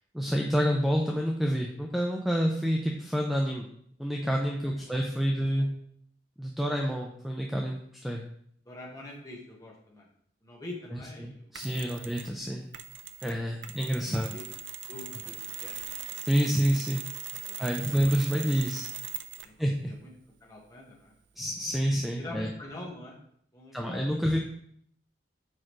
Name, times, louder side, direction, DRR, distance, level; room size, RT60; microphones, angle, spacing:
voice 1, 0.1-3.7 4.0-5.7 6.4-8.2 10.9-12.6 13.2-14.3 16.1-17.0 17.6-18.9 19.6-19.9 21.4-22.5 23.7-24.4, equal, ahead, 0 dB, 0.4 m, -28 dB
voice 2, 4.6-5.4 8.6-10.1 10.4-12.1 13.7-13.8 14.3-14.4 14.9-15.8 17.5-18.1 19.3-20.1 20.4-21.2 22.2-23.2 23.5-24.3, left 2 dB, 20° left, -3 dB, 1.4 m, -45 dB
Mechanisms, 11.5-12.4 12.7-19.6, right 8 dB, 70° right, 0.5 m, -40 dB
6.4 x 4.9 x 3.1 m, 0.66 s
head